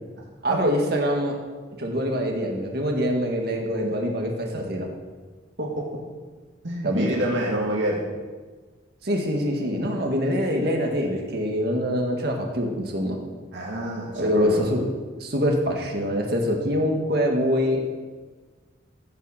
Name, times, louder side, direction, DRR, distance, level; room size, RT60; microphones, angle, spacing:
voice 1, 0.4-1.4 1.8-4.9 6.8-7.1 9.0-13.2 14.2-14.9 15.2-17.8, equal, 55° right, 1 dB, 1.8 m, -24 dB
voice 2, 5.6-6.0 6.6-8.0 13.5-14.7, right 1 dB, 70° right, -3 dB, 2.2 m, -27 dB
14.5 x 6.3 x 6.6 m, 1.4 s
head